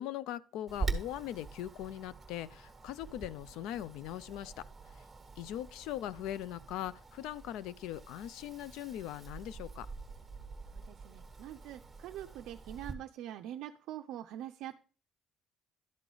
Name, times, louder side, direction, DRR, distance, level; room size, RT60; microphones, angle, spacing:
voice 1, 0.0-4.6 4.9-5.0 5.4-9.9, left 12 dB, 80° left, 0.3 m, -40 dB
Wind, 0.7-12.9, right 4 dB, 10° right, 1.2 m, -44 dB
voice 2, 10.7-14.8, right 12 dB, 75° right, 0.4 m, -44 dB
11.5 x 3.9 x 4.8 m
cardioid pair, 125°, 0 cm